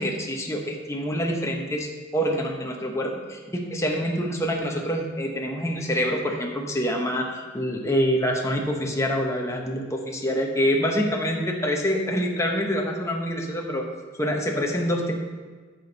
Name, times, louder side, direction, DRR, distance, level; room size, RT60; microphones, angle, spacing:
voice 1, 0.0-13.8 14.2-15.1, equal, 15° left, 0 dB, 1.1 m, -26 dB
8.2 x 6.2 x 5.2 m, 1.5 s
head